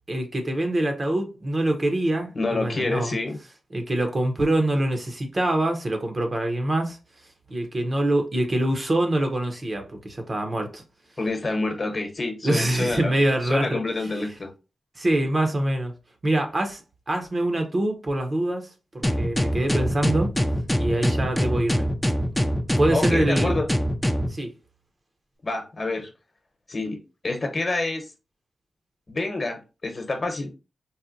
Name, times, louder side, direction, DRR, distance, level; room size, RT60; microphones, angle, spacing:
voice 1, 0.1-3.2 3.7-7.0 7.5-10.8 12.4-13.8 15.0-15.9 16.2-16.8 17.1-20.3 20.7-21.9 22.8-23.6 24.3-24.5, right 1 dB, 40° right, 0.7 m, -25 dB
voice 2, 2.3-3.4 11.2-13.1 13.5-14.5 22.9-23.7 25.4-26.1 26.7-27.0 27.2-28.1 29.1-30.5, left 2 dB, 45° left, 0.9 m, -27 dB
sound 1, 19.0-24.3, equal, 5° left, 0.4 m, -24 dB
4.0 x 2.1 x 2.5 m
cardioid pair, 75°, 0 cm